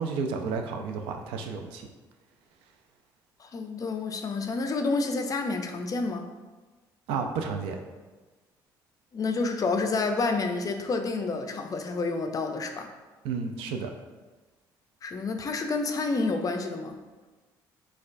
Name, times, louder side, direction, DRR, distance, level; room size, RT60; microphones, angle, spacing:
voice 1, 0.0-1.8 7.1-7.8 13.2-13.9, right 5 dB, 85° right, 4 dB, 0.4 m, -31 dB
voice 2, 3.4-6.3 9.1-12.9 15.0-17.0, left 3 dB, 40° left, 5 dB, 0.4 m, -29 dB
4.3 x 2.3 x 2.5 m, 1.3 s
supercardioid pair, 70°, 9 cm